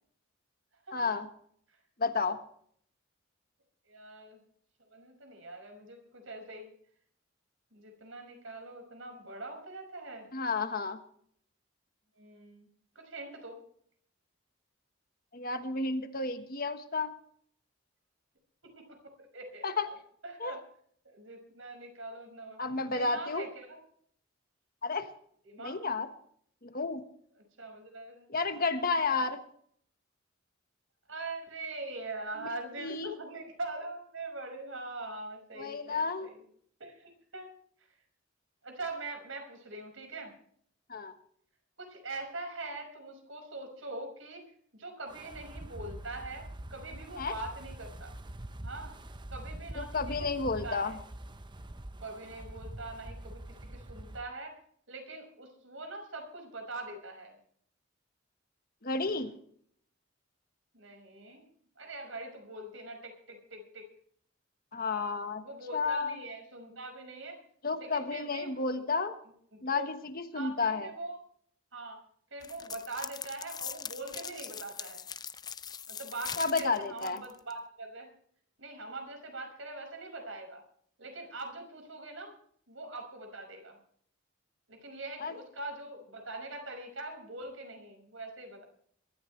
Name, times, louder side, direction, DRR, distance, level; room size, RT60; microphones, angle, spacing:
voice 1, 0.9-1.3 2.0-2.4 10.3-11.0 15.3-17.1 19.6-19.9 20.4-20.6 22.6-23.5 24.8-25.1 25.6-26.1 26.6-27.0 28.3-29.4 32.4-32.5 32.8-33.1 35.5-36.3 40.9-41.1 47.2-47.3 49.7-50.9 58.8-59.3 64.7-65.4 65.7-66.2 67.6-69.1 69.6-70.9 76.4-77.2 85.2-85.3, left 4 dB, 50° left, 8 dB, 1.4 m, -31 dB
voice 2, 3.9-4.4 4.9-6.7 7.7-10.3 12.2-12.7 13.0-13.6 18.6-19.9 20.2-20.6 21.0-23.8 25.4-25.8 27.6-28.3 29.1-29.2 31.1-36.4 36.8-37.5 37.9-38.0 38.6-40.3 41.8-44.4 44.7-48.1 48.6-49.0 49.3-51.0 52.0-54.6 54.9-57.4 60.7-61.4 61.8-63.9 65.4-67.4 67.8-68.8 69.5-69.9 70.3-71.2 71.7-72.0 72.3-75.1 75.9-78.1 78.6-80.6 81.0-82.4 82.7-83.8 84.7-88.6, right 2 dB, 80° right, 4 dB, 5.8 m, -43 dB
Wind, 45.1-54.2, right 1 dB, 25° right, 0.8 m, -44 dB
sound 1, 72.4-77.5, left 7 dB, 20° left, 0.5 m, -41 dB
22.5 x 13.5 x 3.3 m, 0.62 s
head